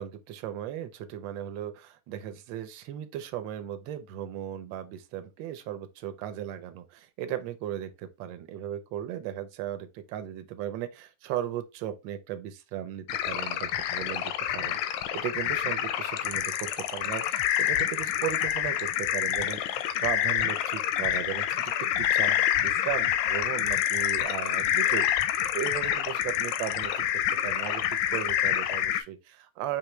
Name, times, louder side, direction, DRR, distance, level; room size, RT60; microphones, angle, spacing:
voice 1, 0.0-25.1 25.5-29.8, right 11 dB, 75° right, 1.3 m, -36 dB
sound 1, 13.1-29.0, left 11 dB, 85° left, 1.4 m, -27 dB
4.8 x 2.9 x 3.1 m
omnidirectional pair, 2.2 m